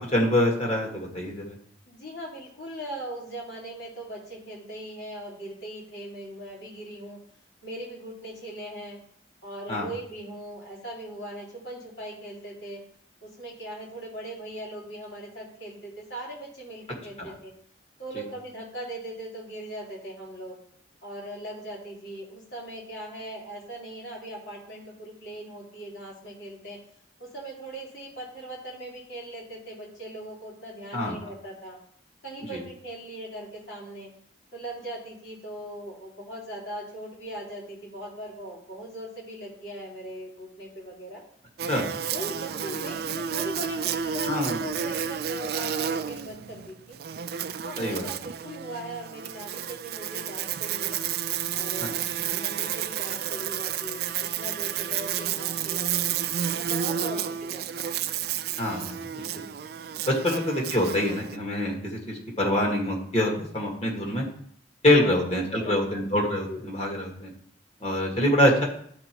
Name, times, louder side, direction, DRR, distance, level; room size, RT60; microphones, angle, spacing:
voice 1, 0.1-1.5 9.7-9.9 17.2-17.3 18.1-18.2 30.9-31.2 32.5-32.6 41.7-41.9 44.3-44.6 47.8-48.1 51.8-51.9 58.6-59.4 60.1-64.2 64.8-67.3 67.8-68.6, left 1 dB, 35° left, -1 dB, 1.8 m, -25 dB
voice 2, 1.9-7.2 7.6-9.0 9.4-12.8 13.2-17.5 18.0-20.6 21.0-26.8 27.2-31.8 32.2-34.1 34.5-41.2 42.1-46.9 47.6-51.0 51.5-52.0 52.3-56.1 56.3-57.2 57.5-58.0 65.0-66.1 66.5-66.7, right 1 dB, 65° left, -4 dB, 3.3 m, -39 dB
Buzz, 41.6-61.4, right 9 dB, 55° right, 0.4 m, -31 dB
11.5 x 4.0 x 4.5 m, 0.63 s
head